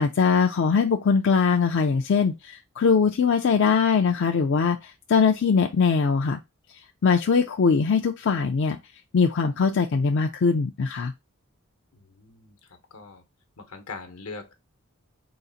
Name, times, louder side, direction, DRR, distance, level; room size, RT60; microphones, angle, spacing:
voice 1, 0.0-6.4 7.0-8.8 9.1-11.1, left 5 dB, 55° left, 0.4 m, -21 dB
voice 2, 11.9-13.2 13.6-14.6, left 4 dB, 80° left, 1.0 m, -42 dB
4.0 x 2.4 x 3.9 m
head